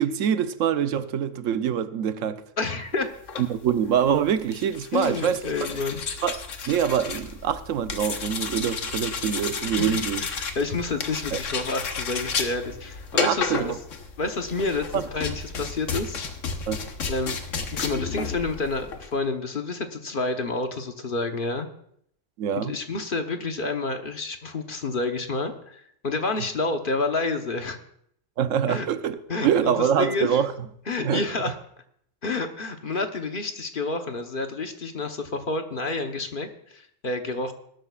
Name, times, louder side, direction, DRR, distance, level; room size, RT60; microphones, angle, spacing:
voice 1, 0.0-2.4 3.4-5.4 6.2-10.2 11.3-11.4 13.1-13.8 14.9-15.1 16.7-16.8 22.4-22.7 28.4-30.5 31.0-31.3, right 8 dB, 90° right, 1.1 m, -25 dB
voice 2, 2.6-3.1 4.9-6.0 9.8-13.7 14.2-16.2 17.1-17.4 17.7-21.7 22.5-27.8 28.7-28.9 29.3-30.4 30.9-31.6 32.2-37.5, left 3 dB, 45° left, 1.1 m, -29 dB
sound 1, 3.1-19.1, left 5 dB, 75° left, 1.4 m, -32 dB
20.0 x 12.5 x 2.4 m
omnidirectional pair, 1.3 m